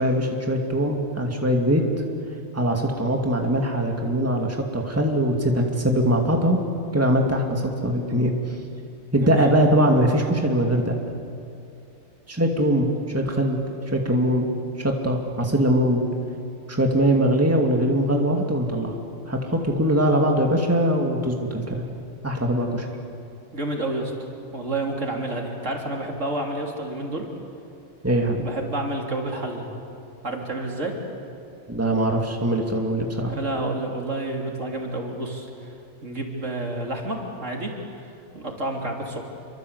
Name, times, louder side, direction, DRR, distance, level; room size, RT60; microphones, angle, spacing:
voice 1, 0.0-1.8 2.5-6.6 6.9-8.6 9.1-11.0 12.3-13.6 13.9-14.5 14.8-16.0 16.7-19.0 19.3-21.8 22.2-22.9 28.0-28.5 31.7-33.3, right 1 dB, 10° right, 1 dB, 2.4 m, -22 dB
voice 2, 9.1-9.6 23.5-27.2 28.4-29.7 30.2-30.9 33.3-35.8 36.0-39.2, right 2 dB, 65° right, 1 dB, 3.5 m, -30 dB
28.0 x 24.5 x 8.1 m, 2.6 s
omnidirectional pair, 1.4 m